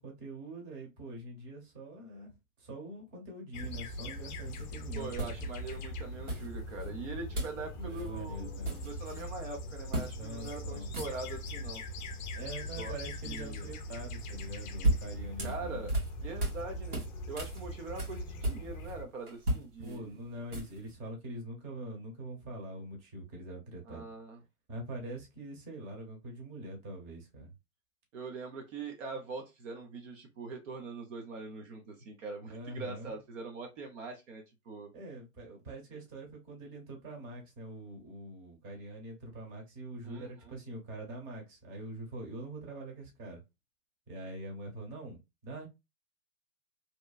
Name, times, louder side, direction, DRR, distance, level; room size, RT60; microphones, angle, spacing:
voice 1, 0.0-2.3 2.6-5.4 7.7-8.9 10.2-10.9 12.3-15.9 19.8-24.1 24.7-27.5 32.5-33.2 34.9-43.4 44.1-45.7, right 1 dB, 30° right, 1.0 m, -44 dB
sound 1, 3.5-19.0, left 1 dB, 35° left, 0.5 m, -41 dB
sound 2, 4.5-4.6 5.2-5.8 6.3-6.9 7.3-7.6 7.9-8.1 8.4-9.3 9.9-10.1 10.4-10.6 10.8-11.5 14.4-16.6 16.9-18.9 19.3-20.9, right 1 dB, 90° right, 1.6 m, -35 dB
voice 2, 5.0-11.8 12.6-13.0 13.2-13.7 15.4-16.0 16.2-20.2 23.9-24.4 28.1-34.9 40.0-40.6, right 3 dB, 60° right, 0.8 m, -42 dB
2.9 x 2.2 x 2.3 m
hypercardioid pair, 130°, 44 cm